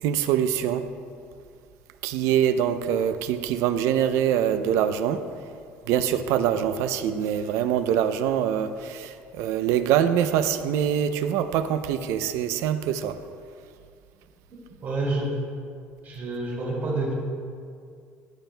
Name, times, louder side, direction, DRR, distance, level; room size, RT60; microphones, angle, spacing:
voice 1, 0.0-0.9 2.0-5.2 5.9-13.2, right 9 dB, 75° right, 11 dB, 0.5 m, -24 dB
voice 2, 14.8-15.3 16.0-17.1, right 2 dB, 35° right, -3 dB, 2.4 m, -28 dB
14.5 x 8.9 x 2.2 m, 2.3 s
cardioid pair, 155°, 5 cm